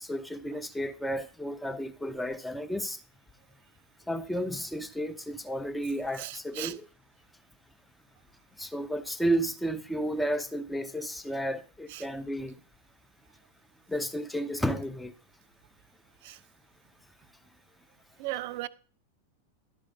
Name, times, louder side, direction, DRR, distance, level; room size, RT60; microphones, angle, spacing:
voice 1, 0.0-3.0 4.1-6.9 8.6-12.5 13.9-15.1, equal, 5° left, 0.6 m, -32 dB
voice 2, 6.2-6.7 11.9-12.0 16.2-16.4 18.2-18.7, right 16 dB, 50° right, 0.4 m, -36 dB
11.5 x 4.9 x 5.3 m
figure-of-eight pair, 90°, 0 cm